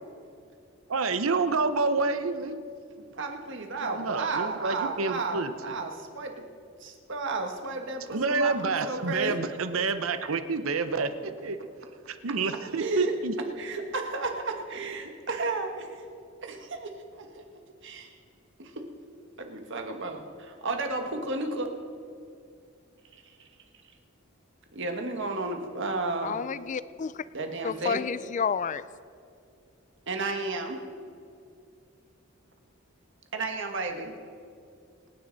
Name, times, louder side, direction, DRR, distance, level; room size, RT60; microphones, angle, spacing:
voice 1, 0.9-2.7 3.8-5.7 8.1-11.6 12.1-13.3, right 4 dB, 85° right, 10 dB, 0.8 m, -28 dB
voice 2, 3.1-6.4 6.8-9.4 12.7-13.1 13.6-16.0 16.4-18.1 18.6-18.8 19.4-21.7 23.4-23.5 24.7-26.4 27.3-28.0 30.1-30.8 33.3-34.1, right 3 dB, 65° right, 4 dB, 1.5 m, -33 dB
voice 3, 26.2-27.1 27.6-28.8, left 6 dB, 35° left, 17 dB, 0.4 m, -30 dB
26.5 x 9.8 x 4.0 m, 2.4 s
head